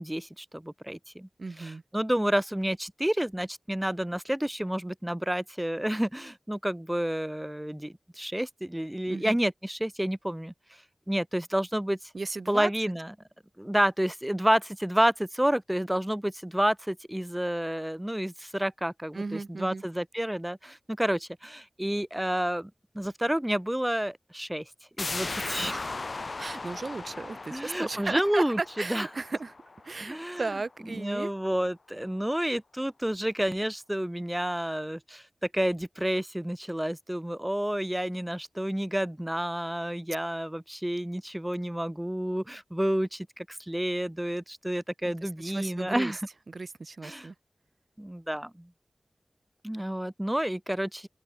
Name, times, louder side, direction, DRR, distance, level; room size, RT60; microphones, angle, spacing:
voice 1, 0.0-1.3 1.6-10.5 11.1-12.0 12.5-13.1 13.6-24.6 25.0-25.7 27.5-29.1 30.0-30.4 30.9-35.2 35.5-46.2 47.0-47.3 48.0-48.7 49.6-51.1, equal, 10° right, 2.2 m, -30 dB
voice 2, 1.4-1.8 9.1-9.4 12.1-12.7 19.1-19.8 25.7-25.9 26.4-29.5 29.8-31.3 45.2-46.2 46.5-47.3, right 3 dB, 60° right, 1.3 m, -35 dB
sound 1, 25.0-30.5 30.8-30.9, left 3 dB, 55° left, 2.4 m, -38 dB
open air
wide cardioid pair, 70°, 0 cm